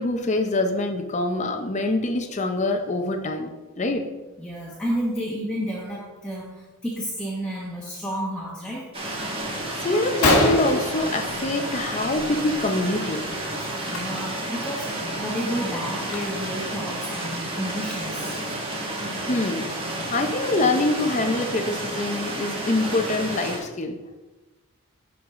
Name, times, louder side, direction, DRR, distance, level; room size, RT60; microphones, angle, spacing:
voice 1, 0.0-4.1 9.5-13.3 19.2-19.7 20.1-24.0, left 2 dB, 30° left, 5 dB, 0.6 m, -25 dB
voice 2, 4.4-8.9 13.9-18.3, equal, 5° left, -5 dB, 1.2 m, -31 dB
sound 1, 8.9-23.6, right 1 dB, 25° right, 1.7 m, -31 dB
Gunshot gunfire, 10.2-11.8 12.2-12.5 12.8-13.0 13.8-14.0 14.5-14.6 15.0-16.6, left 2 dB, 85° left, 1.6 m, -25 dB
11.0 x 4.7 x 3.7 m, 1.1 s
head